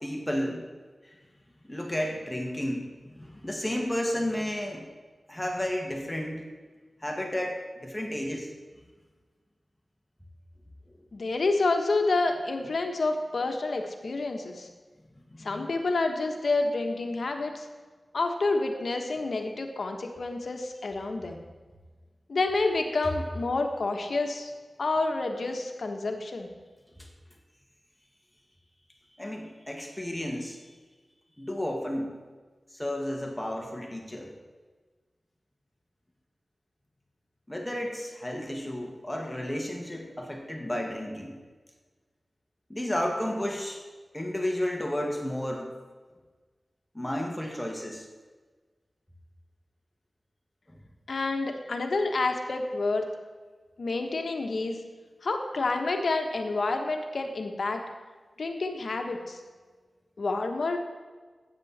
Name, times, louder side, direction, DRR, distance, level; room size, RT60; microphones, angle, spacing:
voice 1, 0.0-0.7 1.0-1.1 1.7-4.9 5.3-6.4 7.0-8.5 15.3-15.7 27.0-27.1 29.2-30.7 31.4-32.1 32.7-34.3 37.5-41.3 42.7-43.8 44.1-45.7 46.9-48.1, left 1 dB, 15° left, 1 dB, 2.0 m, -32 dB
voice 2, 11.1-14.7 15.4-17.7 18.1-21.4 22.3-24.5 24.8-26.5 51.1-53.1 53.8-54.8 55.2-57.8 58.4-59.4 60.2-60.8, left 3 dB, 75° left, 4 dB, 1.3 m, -28 dB
12.5 x 9.0 x 4.3 m, 1.4 s
cardioid pair, 50°, 0 cm